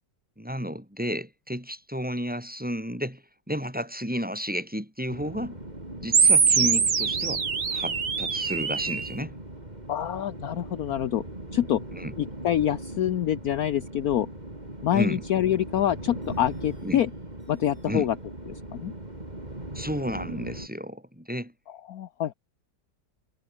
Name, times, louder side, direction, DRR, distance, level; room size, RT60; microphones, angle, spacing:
voice 1, 0.4-3.2 3.5-5.6 6.0-9.3 11.9-12.1 14.9-15.2 16.8-17.0 17.9-18.1 19.7-21.5, equal, 5° right, 4.1 m, -32 dB
sound 1, 5.1-20.7, right 1 dB, 20° right, 4.8 m, -39 dB
sound 2, 6.1-9.1, right 5 dB, 60° right, 2.7 m, -23 dB
voice 2, 9.9-11.2 11.5-11.8 12.2-14.3 14.8-17.1 17.5-18.1 18.7-18.9 21.9-22.3, left 11 dB, 60° left, 1.2 m, -26 dB
omnidirectional pair, 1.9 m